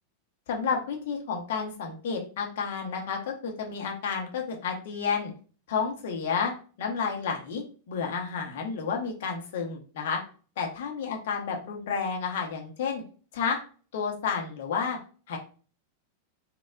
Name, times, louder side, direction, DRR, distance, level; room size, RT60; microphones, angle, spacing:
voice 1, 0.5-5.3 5.7-6.5 6.8-10.2 10.6-13.0 13.3-13.6 13.9-15.0 15.3-15.4, left 6 dB, 55° left, 1 dB, 0.8 m, -31 dB
4.1 x 2.3 x 2.3 m, 0.39 s
figure-of-eight pair, 90°, 0 cm